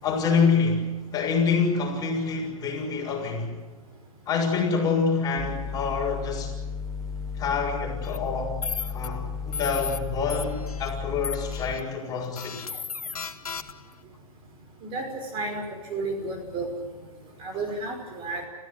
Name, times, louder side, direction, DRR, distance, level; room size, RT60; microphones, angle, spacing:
voice 1, 0.0-3.6 4.3-6.5 7.4-8.6 8.9-12.6, left 5 dB, 20° left, 0 dB, 6.6 m, -26 dB
sound 1, 5.4-11.8, left 5 dB, ahead, 0.8 m, -34 dB
sound 2, 8.0-8.2 8.6-9.1 9.5-10.0 10.3-10.9 11.2-11.8 12.4-13.9, left 5 dB, 80° left, 1.8 m, -35 dB
voice 2, 15.3-15.6 15.9-16.7 17.4-18.5, right 3 dB, 30° right, 3 dB, 5.5 m, -31 dB
27.0 x 15.5 x 9.9 m, 1.2 s
hypercardioid pair, 125°, 18 cm